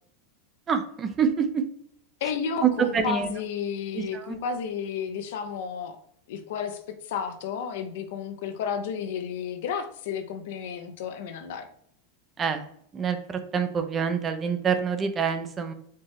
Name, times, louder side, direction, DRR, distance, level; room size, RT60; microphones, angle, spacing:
voice 1, 0.7-1.5 2.6-3.3 4.0-4.1 4.3-4.4 12.4-12.6 12.9-15.7, right 7 dB, 30° right, 8 dB, 0.6 m, -26 dB
voice 2, 2.2-6.0 6.3-11.7, left 7 dB, 65° left, 7 dB, 0.6 m, -32 dB
4.4 x 3.1 x 3.3 m, 0.67 s
hypercardioid pair, 95°, 0 cm